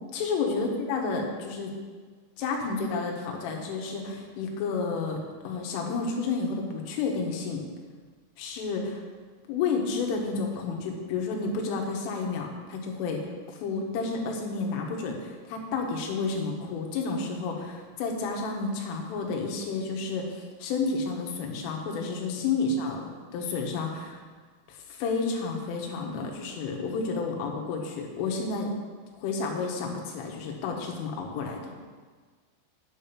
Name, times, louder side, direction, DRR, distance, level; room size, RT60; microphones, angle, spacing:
voice 1, 0.1-1.8 2.4-7.6 8.4-9.0 9.5-13.3 13.6-23.0 23.3-24.2 24.7-28.7 29.2-31.7, left 4 dB, 75° left, 1 dB, 3.7 m, -31 dB
9.8 x 7.0 x 5.8 m, 1.5 s
omnidirectional pair, 6.0 m